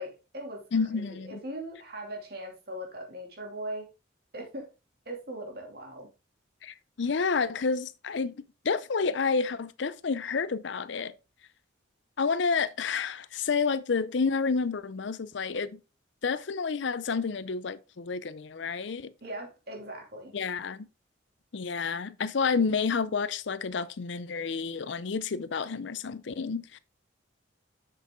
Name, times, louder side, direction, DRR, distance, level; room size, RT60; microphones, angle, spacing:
voice 1, 0.0-0.6 1.1-3.9 4.3-4.7 5.1-6.1 19.2-20.3, right 1 dB, 50° right, 2.7 m, -39 dB
voice 2, 0.7-1.4 6.6-8.3 8.6-11.1 12.2-15.8 16.2-19.1 20.3-20.9 21.5-26.8, left 5 dB, 65° left, 0.5 m, -29 dB
7.6 x 6.5 x 3.7 m
head